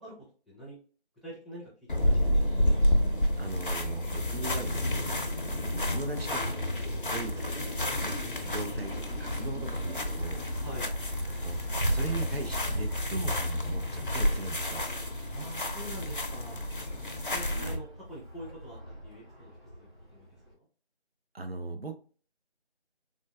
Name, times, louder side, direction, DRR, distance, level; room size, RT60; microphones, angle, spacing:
voice 1, 0.5-0.8 1.2-2.4 10.6-10.9 15.3-16.6 17.3-18.8 19.0-19.5 19.8-20.3, equal, ahead, -8 dB, 0.6 m, -45 dB
sound 1, 1.9-17.8, left 1 dB, 50° left, 0.5 m, -30 dB
voice 2, 3.4-5.0 5.9-6.5 7.0-7.6 8.0-8.2 8.4-10.5 11.4-14.9 17.6-17.8 21.3-21.9, right 3 dB, 65° right, 6 dB, 0.5 m, -38 dB
Wind, 5.6-20.5, right 1 dB, 45° right, 1.4 m, -39 dB
3.8 x 2.3 x 2.2 m, 0.40 s
figure-of-eight pair, 170°, 33 cm